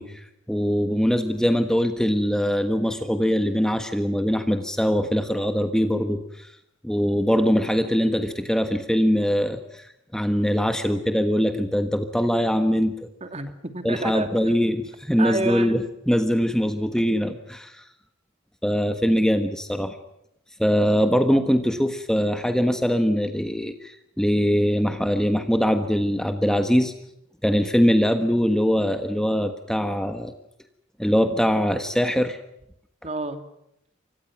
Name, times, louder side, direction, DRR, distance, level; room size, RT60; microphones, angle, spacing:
voice 1, 0.0-6.5 6.8-12.9 13.8-17.8 18.6-20.0 20.6-26.9 27.4-30.3 31.0-32.4, equal, 5° left, 7 dB, 1.4 m, -22 dB
voice 2, 13.2-14.3 15.2-15.8 16.2-16.3 33.0-33.4, right 2 dB, 30° right, 8 dB, 2.6 m, -29 dB
29.5 x 25.0 x 6.0 m, 0.79 s
head